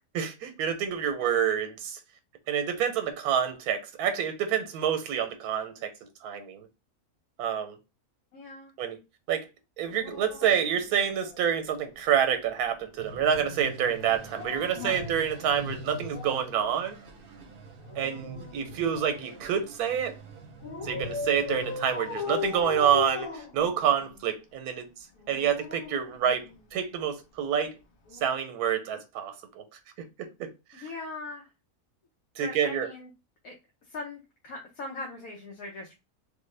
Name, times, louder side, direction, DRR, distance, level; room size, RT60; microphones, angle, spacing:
voice 1, 0.1-2.0 2.5-5.9 6.2-6.7 7.4-7.8 8.8-9.0 9.3-9.5 9.8-17.0 18.0-20.2 20.8-24.9 25.3-27.7 28.2-29.6 30.2-30.9 32.4-32.9, right 8 dB, 85° right, 1.1 m, -28 dB
voice 2, 8.3-8.7 14.7-15.1 30.7-31.5 32.4-33.1 33.4-33.5 33.9-35.9, left 3 dB, 70° left, 1.2 m, -40 dB
Dog, 9.8-11.7 14.1-16.5 17.8-19.5 20.6-24.2 25.2-26.8 28.1-28.3, left 5 dB, 45° left, 1.1 m, -39 dB
sound 1, 13.0-23.1, right 2 dB, 50° right, 0.7 m, -44 dB
3.3 x 2.1 x 3.2 m
omnidirectional pair, 1.6 m